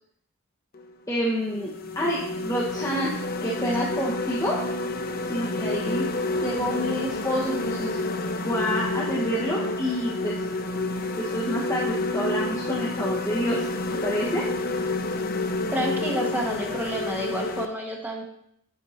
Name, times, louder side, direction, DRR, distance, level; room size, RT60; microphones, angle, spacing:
sound 1, 0.7-0.9 1.5-17.6, left 2 dB, 40° left, 0.4 m, -29 dB
voice 1, 1.1-4.6 5.2-10.4 10.9-13.7 14.0-14.5, equal, 15° left, -6 dB, 1.0 m, -28 dB
voice 2, 15.7-18.2, equal, 10° right, -1 dB, 1.0 m, -29 dB
9.7 x 4.4 x 4.1 m, 0.73 s
head